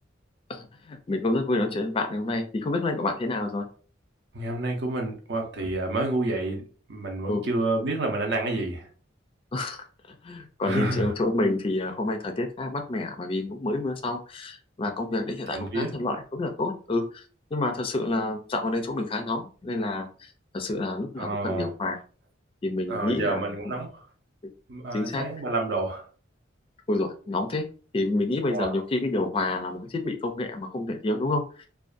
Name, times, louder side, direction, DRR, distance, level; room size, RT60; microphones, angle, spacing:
voice 1, 0.5-3.7 7.3-7.4 9.5-9.8 10.2-17.2 17.5-22.0 22.6-23.7 24.9-25.3 26.9-27.7 27.9-31.7, left 2 dB, 30° left, 0.4 m, -28 dB
voice 2, 4.3-6.6 6.9-8.9 10.6-11.1 15.5-15.9 21.2-21.7 22.9-24.0 24.7-26.1 28.5-28.8, right 2 dB, 60° right, 0.7 m, -29 dB
2.5 x 2.2 x 2.4 m
head